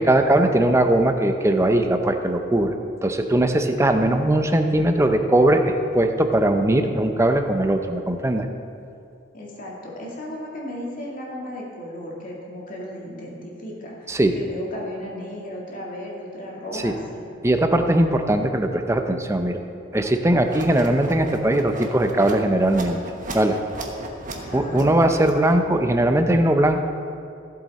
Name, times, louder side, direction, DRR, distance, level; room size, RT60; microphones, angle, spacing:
voice 1, 0.0-2.7 3.0-8.5 14.1-14.3 16.7-16.9 17.4-19.6 19.9-23.0 23.3-23.6 24.5-26.8, right 1 dB, 15° right, 6 dB, 0.6 m, -20 dB
voice 2, 9.3-17.2 24.3-24.9, equal, 45° left, -3 dB, 2.2 m, -35 dB
sound 1, 20.5-25.7, right 1 dB, 40° right, 1.3 m, -35 dB
15.5 x 7.5 x 4.2 m, 2.5 s
head